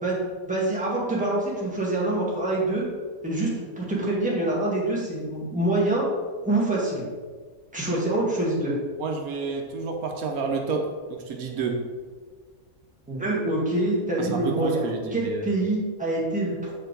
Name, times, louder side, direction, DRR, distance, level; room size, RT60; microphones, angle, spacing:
voice 1, 0.0-2.8 3.2-6.1 6.4-7.1 7.7-8.7 13.1-16.7, right 2 dB, 5° right, -5 dB, 1.6 m, -25 dB
voice 2, 9.0-11.9 14.2-15.5, right 4 dB, 85° right, 3 dB, 1.3 m, -30 dB
7.5 x 4.5 x 3.9 m, 1.5 s
omnidirectional pair, 1.5 m